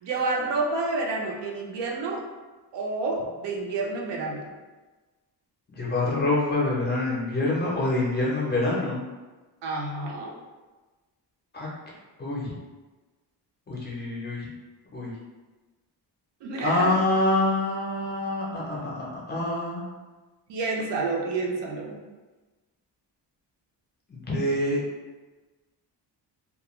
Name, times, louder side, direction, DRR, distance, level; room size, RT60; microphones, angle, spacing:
voice 1, 0.0-2.2 2.7-4.5 9.6-10.3 16.4-17.0 20.5-22.0, right 3 dB, 80° right, -1 dB, 0.6 m, -29 dB
voice 2, 5.7-9.0 11.5-11.7 12.2-12.5 13.7-14.4 14.9-15.1 16.6-19.8 24.1-24.8, left 2 dB, 25° left, -5 dB, 0.5 m, -26 dB
2.3 x 2.1 x 3.0 m, 1.2 s
wide cardioid pair, 165°, 41 cm